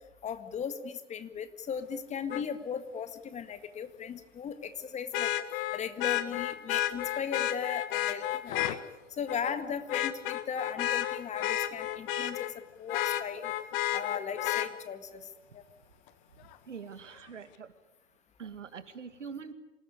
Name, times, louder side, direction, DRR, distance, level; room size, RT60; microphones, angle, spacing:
voice 1, 0.2-5.3 5.7-8.8 9.1-12.5 12.8-13.5 13.9-15.6, left 7 dB, 20° left, 10 dB, 1.8 m, -37 dB
Vehicle horn car horn honking, 2.3-2.4 5.1-8.8 9.3-9.5 9.9-12.5 12.9-14.7 16.5-16.6, left 13 dB, 45° left, 1.9 m, -31 dB
voice 2, 16.4-17.7 18.4-19.5, right 6 dB, 75° right, 10 dB, 2.4 m, -44 dB
27.0 x 18.5 x 9.9 m, 1.0 s
figure-of-eight pair, 110°, 37 cm